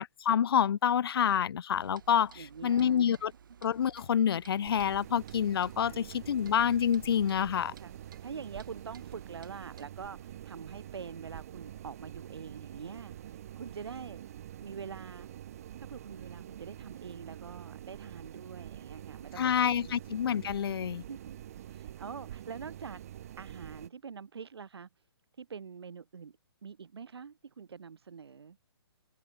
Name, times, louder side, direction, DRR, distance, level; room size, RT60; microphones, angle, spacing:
voice 1, 0.0-3.3 3.6-7.7 19.4-21.0, left 8 dB, 65° left, 0.4 m, -28 dB
Clock, 1.7-9.8, right 8 dB, 50° right, 5.3 m, -56 dB
voice 2, 2.3-3.3 5.8-6.1 7.8-7.9 8.2-14.2 14.6-15.3 15.8-20.0 21.1-21.4 21.7-23.0 23.4-24.9 25.4-28.6, right 6 dB, 75° right, 1.6 m, -45 dB
sound 1, 4.6-23.9, right 11 dB, 35° right, 1.3 m, -46 dB
open air
hypercardioid pair, 165°, 13 cm